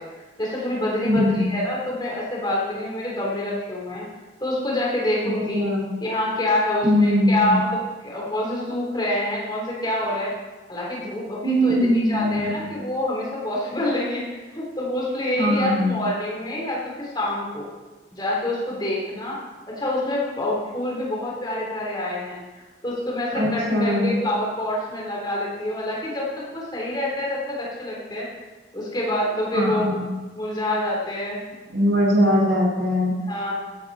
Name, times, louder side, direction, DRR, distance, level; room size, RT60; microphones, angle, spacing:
voice 1, 0.4-4.1 4.4-5.6 6.0-7.8 8.0-10.3 10.7-17.7 18.1-19.4 19.7-28.3 28.7-29.9 30.3-31.4 33.3-33.5, left 1 dB, 25° left, -4 dB, 4.0 m, -26 dB
voice 2, 1.0-1.5 5.2-5.9 6.8-7.6 11.4-12.7 15.4-16.0 23.3-24.1 29.5-30.0 31.7-33.1, equal, 85° right, -4 dB, 4.8 m, -21 dB
16.5 x 9.1 x 4.3 m, 1.2 s
head